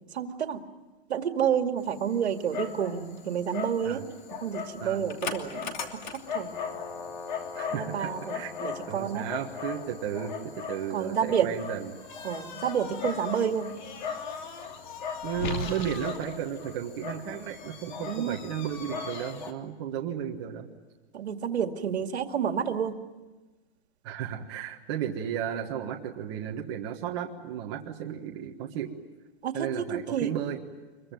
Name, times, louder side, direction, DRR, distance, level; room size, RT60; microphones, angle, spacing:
voice 1, 0.1-0.6 1.1-4.0 4.4-6.6 7.7-9.3 10.9-11.5 12.2-13.7 18.0-18.4 21.1-23.0 29.4-30.3, right 8 dB, 80° right, 6 dB, 2.3 m, -29 dB
Dog, 1.8-19.5, left 5 dB, 45° left, 2.9 m, -38 dB
voice 2, 7.5-8.5 8.9-10.3 10.7-11.9 15.2-20.7 24.0-28.9 29.5-30.6, right 9 dB, 25° right, 1 dB, 1.5 m, -34 dB
25.5 x 22.5 x 9.2 m, 1.2 s
hypercardioid pair, 175°, 33 cm